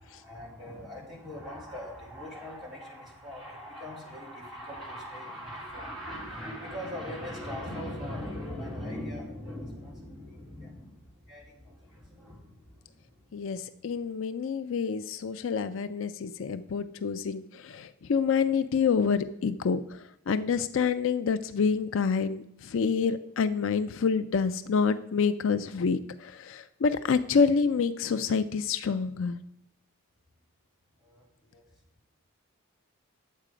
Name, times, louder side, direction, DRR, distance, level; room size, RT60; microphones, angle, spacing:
voice 1, 0.0-13.4 13.6-13.7 31.0-31.6, left 1 dB, ahead, -6 dB, 3.2 m, -40 dB
voice 2, 13.3-29.4, left 5 dB, 65° left, 12 dB, 0.4 m, -27 dB
10.0 x 7.5 x 5.0 m, 0.77 s
head